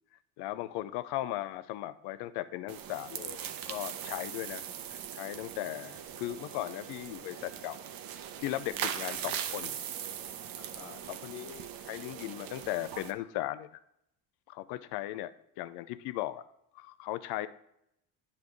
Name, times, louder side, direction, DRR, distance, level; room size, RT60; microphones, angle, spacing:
voice 1, 0.4-4.6 4.9-7.8 8.4-9.8 10.8-13.7 14.5-16.4 16.7-17.5, left 15 dB, 70° left, 14 dB, 0.5 m, -37 dB
sound 1, 2.7-13.1, right 9 dB, 55° right, 0.8 m, -40 dB
9.3 x 3.5 x 4.6 m, 0.77 s
supercardioid pair, 75°, 41 cm